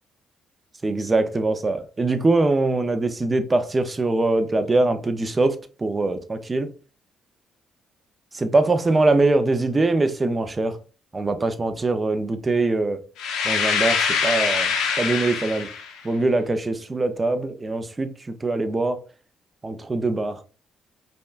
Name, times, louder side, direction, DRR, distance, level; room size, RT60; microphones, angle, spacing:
voice 1, 0.8-6.7 8.3-10.8 11.1-13.0 13.4-15.7 16.0-18.1 18.4-19.0 19.6-20.4, right 2 dB, 25° right, 9 dB, 0.5 m, -22 dB
sound 1, 13.2-16.0, left 6 dB, 90° left, 0.7 m, -24 dB
5.1 x 2.3 x 2.4 m, 0.36 s
cardioid pair, 90°, 0 cm